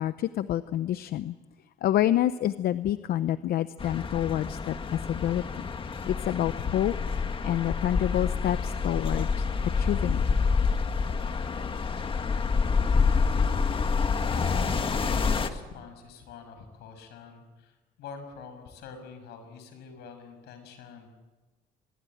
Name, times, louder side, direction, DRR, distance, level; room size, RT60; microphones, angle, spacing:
voice 1, 0.0-1.4 1.8-5.4 6.1-6.9 7.4-9.4 9.8-10.2, left 12 dB, 65° left, 13 dB, 0.8 m, -28 dB
sound 1, 3.8-15.5, left 5 dB, 30° left, 1.8 m, -27 dB
voice 2, 14.2-21.1, left 6 dB, 80° left, 8 dB, 6.2 m, -46 dB
25.5 x 21.5 x 8.8 m, 1.2 s
cardioid pair, 110°, 17 cm